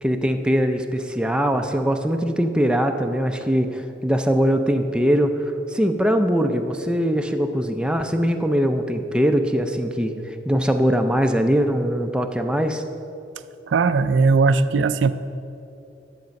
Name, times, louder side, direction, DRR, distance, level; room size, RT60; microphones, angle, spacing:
voice 1, 0.0-12.8, equal, 5° right, 5 dB, 0.4 m, -21 dB
voice 2, 13.7-15.1, right 4 dB, 90° right, 12 dB, 0.4 m, -18 dB
10.5 x 7.3 x 5.2 m, 2.8 s
head